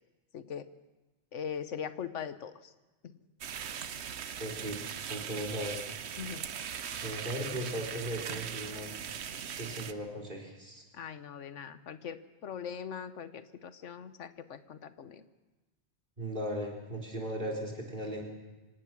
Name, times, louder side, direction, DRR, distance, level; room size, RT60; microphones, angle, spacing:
voice 1, 0.3-0.7 1.3-2.7 3.0-3.1 6.2-6.4 10.9-15.2, left 7 dB, 75° left, 12 dB, 1.3 m, -41 dB
sound 1, 3.4-9.9, right 8 dB, 65° right, 1.0 m, -40 dB
voice 2, 4.4-5.8 7.0-8.9 9.5-10.8 16.2-18.2, right 1 dB, 45° right, 2 dB, 4.1 m, -37 dB
25.5 x 18.0 x 6.1 m, 1.1 s
omnidirectional pair, 1.3 m